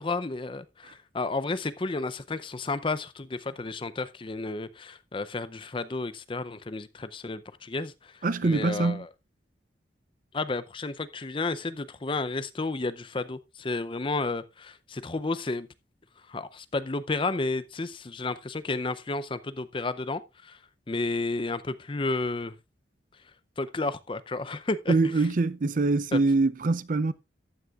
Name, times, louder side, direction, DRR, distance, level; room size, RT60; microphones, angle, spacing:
voice 1, 0.0-9.1 10.3-15.7 16.3-20.6 20.9-22.5 23.6-24.9 26.1-26.2, left 3 dB, 30° left, 0.5 m, -32 dB
voice 2, 8.2-9.0 24.9-27.1, right 3 dB, 45° right, 0.5 m, -24 dB
14.0 x 9.5 x 2.4 m
head